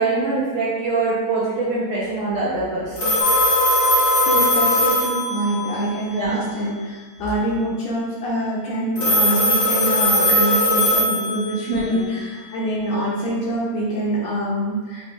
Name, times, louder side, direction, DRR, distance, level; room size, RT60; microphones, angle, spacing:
voice 1, 0.0-3.1 6.1-6.4 11.7-12.0, right 3 dB, 75° right, -6 dB, 1.6 m, -23 dB
Telephone, 3.0-5.8 9.0-11.8, left 1 dB, 50° left, 1.9 m, -19 dB
sound 1, 3.2-5.8, left 1 dB, 50° right, 1.6 m, -24 dB
voice 2, 4.2-15.1, right 1 dB, 75° left, -6 dB, 1.7 m, -25 dB
5.1 x 2.3 x 3.5 m, 1.4 s
omnidirectional pair, 3.6 m